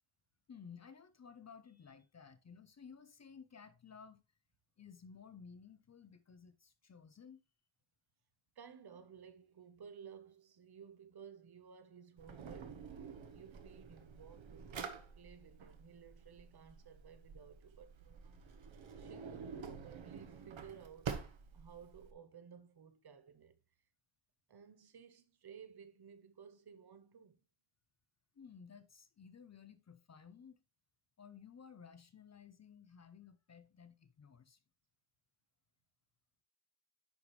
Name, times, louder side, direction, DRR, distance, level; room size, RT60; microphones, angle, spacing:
voice 1, 0.5-4.2 4.8-7.4 28.3-30.6 31.2-34.6, left 6 dB, 35° left, 0.6 m, -56 dB
voice 2, 8.5-13.1 13.3-14.8 15.1-18.5 18.7-21.1 21.5-23.5 24.5-27.4, right 7 dB, 50° right, 1.0 m, -56 dB
Drawer open or close, 12.2-22.1, right 6 dB, 70° right, 1.3 m, -48 dB
10.5 x 4.9 x 3.2 m
wide cardioid pair, 160°, 48 cm